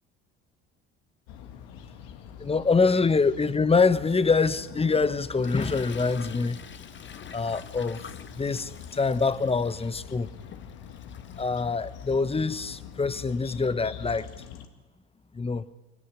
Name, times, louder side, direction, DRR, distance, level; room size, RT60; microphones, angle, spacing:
sound 1, 1.3-14.7, left 8 dB, 75° left, 2.1 m, -45 dB
voice 1, 2.4-6.6 7.3-8.1 8.3-8.7 9.0-10.3 11.4-14.3 15.3-15.6, left 4 dB, 20° left, 1.2 m, -25 dB
Toilet flush, 4.1-14.3, left 7 dB, 35° left, 1.5 m, -48 dB
23.5 x 17.5 x 9.9 m
hypercardioid pair, 70°, 31 cm